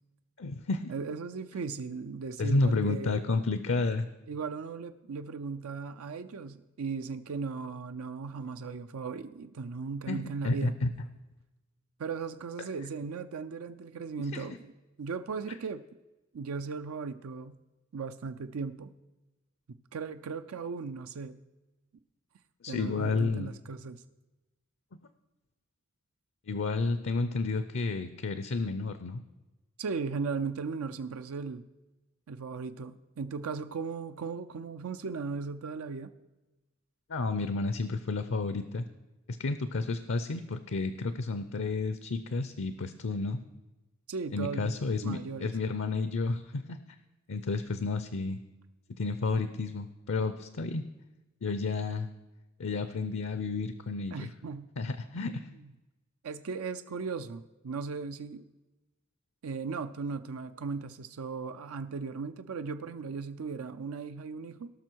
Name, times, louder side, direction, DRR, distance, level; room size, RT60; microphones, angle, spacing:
voice 1, 0.4-0.9 2.4-4.1 10.1-10.9 12.6-12.7 14.3-14.4 22.6-23.5 26.5-29.2 37.1-38.8 39.3-43.4 44.3-46.8 47.3-48.4 49.0-50.8 51.4-52.1 52.6-54.3 54.8-55.5, left 3 dB, 65° left, 11 dB, 0.6 m, -31 dB
voice 2, 0.9-3.2 4.3-10.8 12.0-14.7 15.0-15.8 16.3-17.6 17.9-18.9 19.7-21.4 22.7-24.0 29.8-31.7 32.3-36.1 44.1-44.8 45.0-45.5 54.1-54.7 55.2-55.4 56.2-58.4 59.4-64.7, right 5 dB, 85° right, 9 dB, 0.5 m, -37 dB
18.0 x 6.1 x 4.6 m, 1.1 s
head